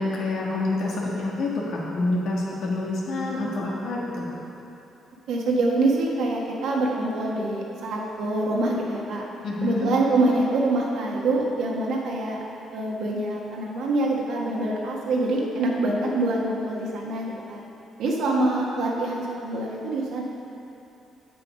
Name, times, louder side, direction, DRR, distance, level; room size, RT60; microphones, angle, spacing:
voice 1, 0.0-4.3 9.4-9.9, left 2 dB, 80° left, -4 dB, 1.8 m, -27 dB
voice 2, 5.3-9.2 9.6-12.4 12.7-17.6 18.0-20.2, right 2 dB, 80° right, -2 dB, 1.5 m, -25 dB
7.7 x 7.7 x 5.1 m, 2.8 s
cardioid pair, 90°, 0 cm